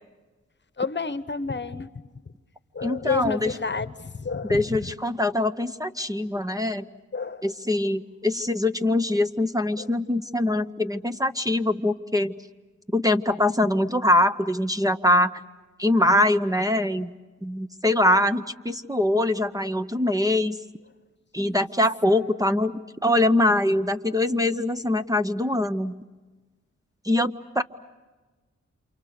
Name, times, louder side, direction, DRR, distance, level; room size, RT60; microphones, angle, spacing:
voice 1, 0.8-1.9 2.7-4.6 7.1-7.4 9.8-9.9 21.4-21.6, left 4 dB, 40° left, 13 dB, 1.1 m, -30 dB
voice 2, 2.8-3.6 4.4-6.9 7.4-12.3 12.9-15.4 15.8-17.1 17.4-20.6 21.3-22.7 23.0-25.9 27.0-27.6, left 1 dB, 10° right, 8 dB, 0.8 m, -23 dB
28.5 x 28.0 x 6.6 m, 1.3 s
cardioid pair, 60°, 29 cm